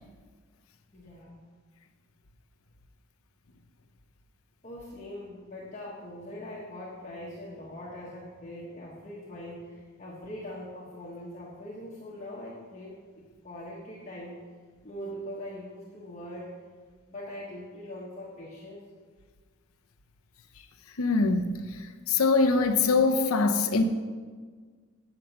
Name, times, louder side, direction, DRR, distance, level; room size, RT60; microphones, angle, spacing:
voice 1, 0.9-1.3 4.6-14.4 14.8-16.5 17.1-18.8, left 1 dB, 35° left, -6 dB, 1.3 m, -42 dB
voice 2, 21.0-21.8 22.1-23.8, left 4 dB, 90° left, 7 dB, 0.7 m, -23 dB
7.7 x 7.1 x 5.5 m, 1.5 s
head